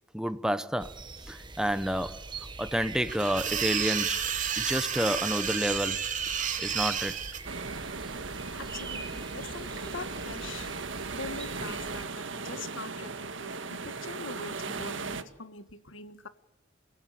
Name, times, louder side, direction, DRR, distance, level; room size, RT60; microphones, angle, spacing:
voice 1, 0.1-1.0 1.3-2.2 2.6-4.2 4.6-6.1 6.6-7.2, equal, 5° right, 0.9 m, -29 dB
sound 1, 0.8-12.0, right 3 dB, 25° right, 1.6 m, -44 dB
sound 2, 3.1-7.4, right 8 dB, 40° right, 2.5 m, -31 dB
sound 3, 7.4-15.2, right 4 dB, 75° right, 1.7 m, -37 dB
voice 2, 8.5-10.7 11.0-16.3, left 3 dB, 85° left, 1.7 m, -43 dB
30.0 x 16.5 x 8.4 m
head